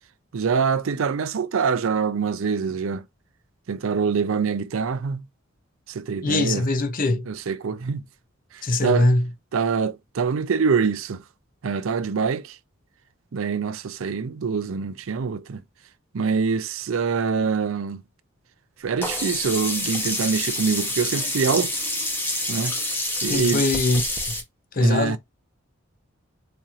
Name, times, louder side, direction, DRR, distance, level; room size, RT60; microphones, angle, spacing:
voice 1, 0.3-3.0 3.7-5.2 5.9-6.6 7.3-8.0 8.8-9.1 9.5-11.2 11.6-12.6 13.3-15.6 16.1-18.0 18.8-21.8 22.5-22.7 23.2-23.6 24.8-25.2, right 5 dB, 80° right, 0.5 m, -25 dB
voice 2, 6.2-7.3 8.6-9.3 22.9-23.0 23.3-24.0 24.7-25.2, left 2 dB, 40° left, 0.6 m, -21 dB
Sink (filling or washing), 19.0-24.4, left 1 dB, 10° left, 0.9 m, -27 dB
4.3 x 2.8 x 2.4 m
head